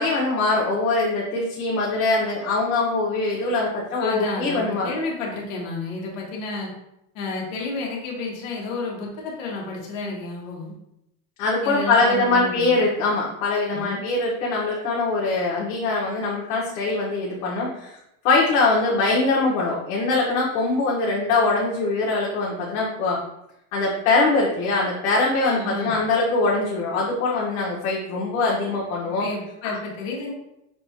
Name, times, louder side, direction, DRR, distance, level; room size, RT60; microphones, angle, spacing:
voice 1, 0.0-4.9 11.4-18.0 18.2-23.2 23.7-29.3 29.6-29.8, left 3 dB, 85° left, -5 dB, 1.1 m, -22 dB
voice 2, 4.0-6.7 7.1-10.7 11.6-12.8 13.7-14.0 25.5-25.9 29.0-30.3, left 3 dB, 70° left, -2 dB, 1.3 m, -31 dB
5.9 x 2.4 x 2.8 m, 0.83 s
supercardioid pair, 165°, 41 cm